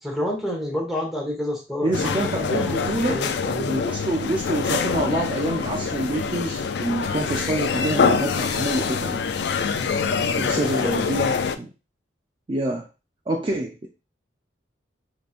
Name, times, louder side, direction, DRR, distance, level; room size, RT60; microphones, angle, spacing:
voice 1, 0.0-3.8 9.7-10.4 10.8-11.1, left 1 dB, ahead, -3 dB, 1.2 m, -30 dB
voice 2, 1.8-3.2 3.7-9.2 10.4-11.7 12.5-12.9 13.3-13.9, right 2 dB, 25° right, 1 dB, 0.4 m, -27 dB
sound 1, 1.9-11.6, left 5 dB, 60° left, 0.3 m, -25 dB
5.1 x 2.9 x 2.5 m, 0.31 s
head